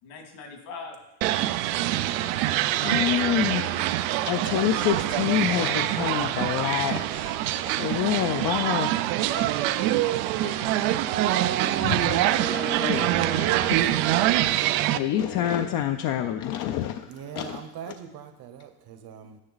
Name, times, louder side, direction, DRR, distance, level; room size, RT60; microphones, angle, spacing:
voice 1, 0.0-1.0 1.2-2.3 2.7-4.0 4.4-4.7 9.6-13.1 13.8-14.5, left 4 dB, 75° left, 3 dB, 2.5 m, -44 dB
sound 1, 1.2-15.0, right 14 dB, 85° right, 0.7 m, -25 dB
voice 2, 2.8-3.6 4.3-7.4 7.6-8.9 9.3-9.5 10.4-10.5 11.8-12.2 12.8-13.1 13.3-13.8 14.9-17.6, left 11 dB, 45° left, 7 dB, 0.5 m, -27 dB
sound 2, 11.0-16.2, right 7 dB, 20° right, 0.4 m, -35 dB
voice 3, 17.1-19.4, right 8 dB, 45° right, 9 dB, 1.0 m, -41 dB
9.9 x 9.7 x 4.0 m, 0.94 s
cardioid pair, 140°, 49 cm